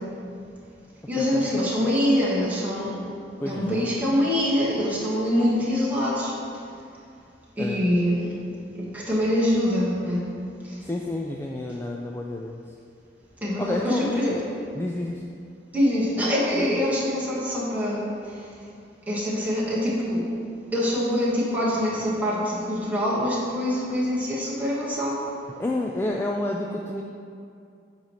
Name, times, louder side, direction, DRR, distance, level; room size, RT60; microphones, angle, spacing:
voice 1, 1.1-3.0 3.4-6.4 7.6-8.4 8.8-10.3 10.6-10.8 13.4-14.4 15.7-18.4 19.1-20.3 20.7-25.2, equal, 10° right, -7 dB, 1.5 m, -24 dB
voice 2, 3.4-3.9 7.6-7.8 10.8-12.6 13.6-14.4 14.8-15.2 25.6-27.0, left 1 dB, 15° left, 0 dB, 0.3 m, -29 dB
8.7 x 3.2 x 5.5 m, 2.4 s
head